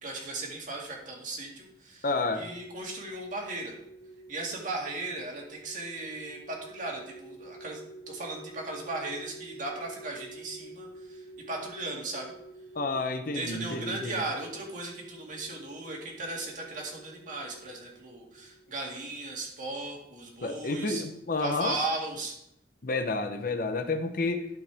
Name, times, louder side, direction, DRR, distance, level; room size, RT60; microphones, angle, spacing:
voice 1, 0.0-3.8 4.3-7.8 8.1-12.3 13.3-21.0 21.4-22.4, right 2 dB, 50° right, -1 dB, 2.0 m, -37 dB
voice 2, 2.0-2.5 12.7-14.1 20.4-21.8 22.8-24.5, left 3 dB, 55° left, 7 dB, 0.8 m, -30 dB
sound 1, 2.1-18.7, right 2 dB, 20° left, 2.3 m, -49 dB
12.0 x 5.8 x 3.5 m, 0.78 s
head